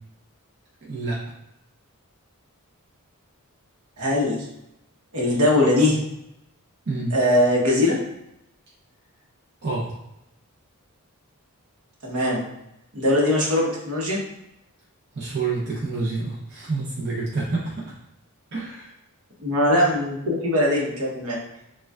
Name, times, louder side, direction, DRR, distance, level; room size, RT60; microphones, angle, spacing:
voice 1, 0.8-1.2 6.9-7.2 9.6-9.9 15.1-17.8 18.5-18.9, right 3 dB, 50° right, -5 dB, 0.7 m, -28 dB
voice 2, 4.0-4.5 5.1-6.0 7.1-8.0 12.0-12.4 12.9-14.2 19.4-21.4, left 1 dB, 75° right, -2 dB, 1.1 m, -21 dB
6.5 x 2.4 x 2.4 m, 0.85 s
head